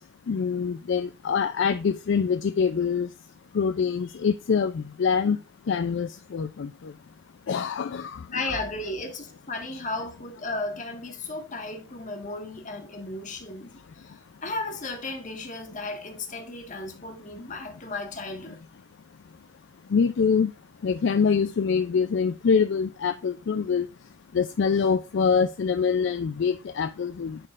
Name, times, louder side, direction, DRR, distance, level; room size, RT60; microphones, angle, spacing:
voice 1, 0.3-3.1 3.5-5.4 5.7-6.9 7.5-8.2 19.9-20.5 20.8-23.9 24.3-27.4, left 6 dB, 60° left, 0.4 m, -25 dB
voice 2, 8.3-14.1 14.4-18.6, left 2 dB, 35° left, 1.5 m, -34 dB
11.0 x 3.9 x 2.4 m
head